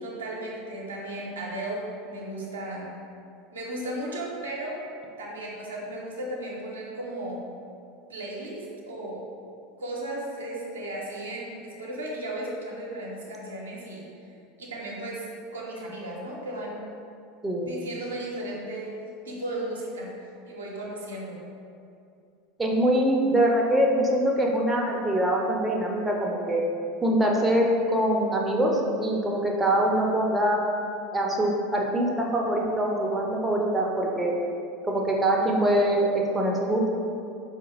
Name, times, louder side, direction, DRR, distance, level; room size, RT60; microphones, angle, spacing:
voice 1, 0.0-2.9 3.5-4.8 5.2-7.5 8.1-9.3 9.8-14.0 14.6-16.9 17.6-19.0 19.2-20.1 20.4-21.4, right 1 dB, 80° right, -3 dB, 0.6 m, -35 dB
voice 2, 22.6-26.6 27.0-30.6 31.1-34.3 34.9-36.1 36.3-36.9, right 1 dB, 10° right, -1 dB, 0.5 m, -24 dB
4.4 x 2.4 x 3.0 m, 2.5 s
figure-of-eight pair, 80°, 0 cm